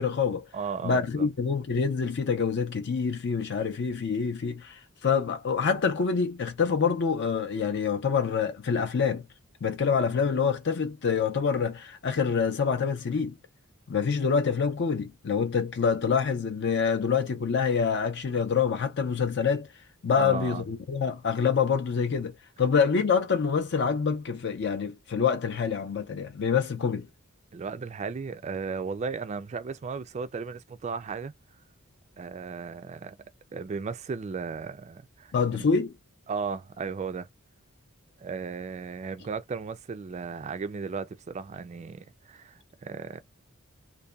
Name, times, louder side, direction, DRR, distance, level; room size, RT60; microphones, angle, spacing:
voice 1, 0.0-0.5 0.8-9.3 9.6-13.4 13.9-19.7 20.0-27.1 35.3-36.0, left 6 dB, 55° left, 0.5 m, -26 dB
voice 2, 0.5-1.3 20.2-20.6 27.5-31.3 32.2-33.2 33.5-35.7 36.3-37.3 38.2-43.2, right 5 dB, 30° right, 0.3 m, -35 dB
2.6 x 2.2 x 2.2 m
head